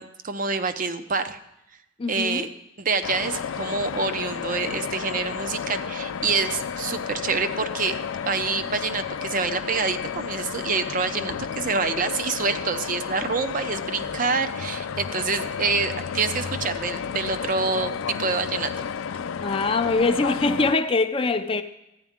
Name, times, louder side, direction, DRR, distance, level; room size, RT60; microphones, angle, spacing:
voice 1, 0.0-1.4 2.1-2.5 2.8-8.0 8.2-18.7, right 4 dB, 40° right, 0.7 m, -27 dB
voice 2, 2.0-2.4 19.4-21.6, left 3 dB, 25° left, 0.5 m, -23 dB
sound 1, 3.0-20.7, left 7 dB, 80° left, 0.4 m, -32 dB
13.5 x 10.0 x 3.6 m
head